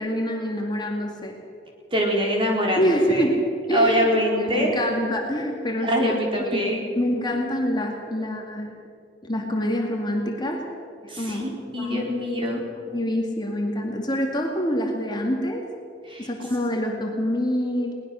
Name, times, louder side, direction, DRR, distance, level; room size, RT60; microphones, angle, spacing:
voice 1, 0.0-1.3 2.8-3.4 3.7-4.1 4.4-6.2 6.5-6.7 7.0-8.7 9.2-10.7 11.0-11.5 11.8-12.1 12.9-15.6 16.2-17.9, equal, 25° left, 1 dB, 2.3 m, -26 dB
voice 2, 1.9-3.3 3.7-4.7 5.8-6.8 11.1-12.6 16.1-16.3, equal, 30° right, -1 dB, 4.2 m, -24 dB
22.0 x 19.5 x 6.5 m, 2.4 s
head